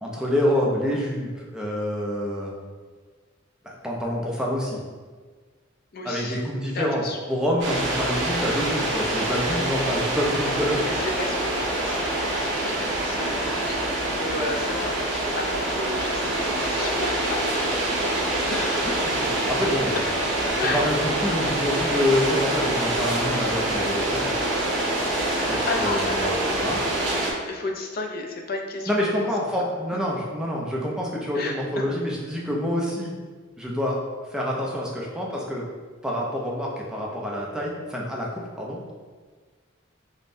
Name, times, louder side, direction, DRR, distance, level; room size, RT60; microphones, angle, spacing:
voice 1, 0.0-2.5 3.6-4.8 6.0-7.0 7.3-10.8 18.8-20.0 20.5-24.3 25.5-26.8 28.9-33.1 33.6-34.0 34.3-35.7 36.0-38.8, left 1 dB, 5° right, -3 dB, 0.5 m, -27 dB
voice 2, 5.9-6.4 6.7-7.2 11.0-18.0 18.5-18.9 20.6-20.8 25.3-26.4 27.1-27.2 27.5-29.3 31.3-31.8, left 3 dB, 50° left, 1 dB, 0.4 m, -33 dB
sound 1, 7.6-27.3, right 1 dB, 65° right, 0.9 m, -25 dB
5.2 x 2.1 x 2.6 m, 1.5 s
head